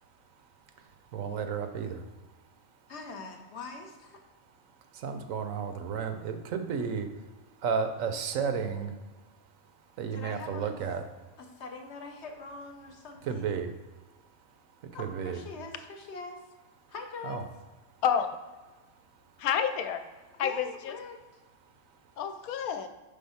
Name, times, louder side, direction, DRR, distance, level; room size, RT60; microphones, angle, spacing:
voice 1, 1.1-2.0 5.0-7.1 7.6-8.9 10.0-11.0 13.3-13.7 15.0-15.4 17.2-17.4, right 6 dB, 70° right, 7 dB, 1.0 m, -32 dB
voice 2, 2.9-4.2 10.1-10.7 11.4-13.6 14.9-16.4 16.9-17.4 20.4-21.2, left 4 dB, 60° left, 4 dB, 0.9 m, -43 dB
voice 3, 19.4-20.0 20.4-21.0 22.2-22.9, left 8 dB, 85° left, 8 dB, 1.0 m, -29 dB
5.6 x 3.6 x 5.5 m, 1.3 s
omnidirectional pair, 1.5 m